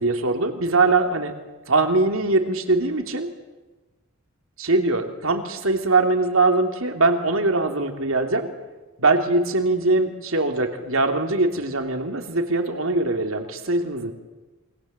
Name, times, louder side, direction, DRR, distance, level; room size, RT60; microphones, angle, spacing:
voice 1, 0.0-1.3 1.7-3.3 4.6-8.5 9.0-14.1, right 3 dB, 70° right, 5 dB, 3.0 m, -22 dB
28.5 x 23.5 x 8.1 m, 1.2 s
head